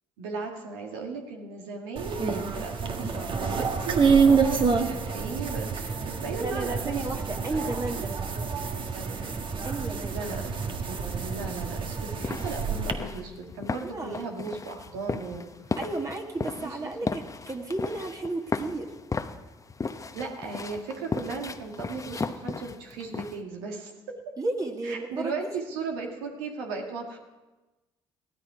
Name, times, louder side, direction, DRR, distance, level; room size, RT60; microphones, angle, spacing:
voice 1, 0.2-7.0 7.5-8.1 8.6-9.1 10.1-10.4 10.8-15.5 16.6-16.7 17.0-17.1 20.1-23.9 24.8-27.2, right 4 dB, 85° right, 1 dB, 2.1 m, -36 dB
sound 1, 2.0-12.9, right 5 dB, 45° right, 1.6 m, -27 dB
voice 2, 6.4-8.1 9.6-10.2 13.8-14.2 15.8-18.9 24.4-25.5, right 2 dB, 30° right, 1 dB, 2.1 m, -33 dB
sound 2, 12.2-23.4, left 4 dB, 30° left, 1.0 m, -35 dB
15.5 x 13.0 x 5.0 m, 1.1 s
hypercardioid pair, 60°, 12 cm